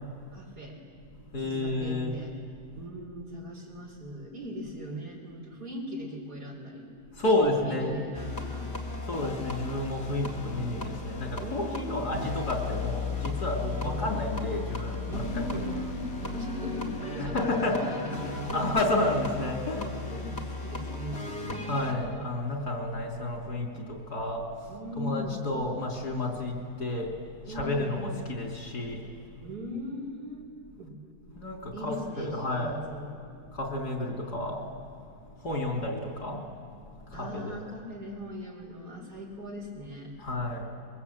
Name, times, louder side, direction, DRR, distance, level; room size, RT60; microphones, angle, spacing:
voice 1, 0.3-0.8 1.4-2.3 2.8-6.9 7.2-8.8 11.4-12.2 13.6-14.1 15.1-18.7 19.7-21.7 24.7-25.5 27.5-28.3 29.4-30.5 30.8-31.0 31.7-33.1 34.2-34.3 37.1-40.1, equal, 80° right, -1 dB, 5.1 m, -39 dB
voice 2, 1.3-2.1 7.2-7.9 9.0-15.2 15.5-15.6 17.2-17.9 18.5-19.8 21.7-29.5 31.3-32.8 33.5-36.5 37.1-37.6 40.2-40.6, left 2 dB, 80° left, 0 dB, 3.8 m, -31 dB
sound 1, 8.1-21.9, left 3 dB, 40° left, 2.5 m, -36 dB
23.0 x 22.5 x 8.5 m, 2.2 s
omnidirectional pair, 1.7 m